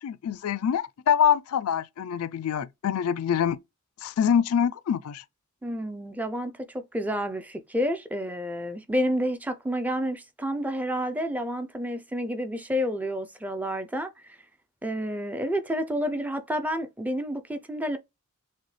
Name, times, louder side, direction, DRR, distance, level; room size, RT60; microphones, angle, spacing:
voice 1, 0.0-3.6 4.0-5.2, left 8 dB, 75° left, 0.4 m, -25 dB
voice 2, 5.6-6.6 6.9-14.4 14.8-18.0, equal, 5° right, 0.5 m, -29 dB
6.3 x 2.2 x 3.2 m
head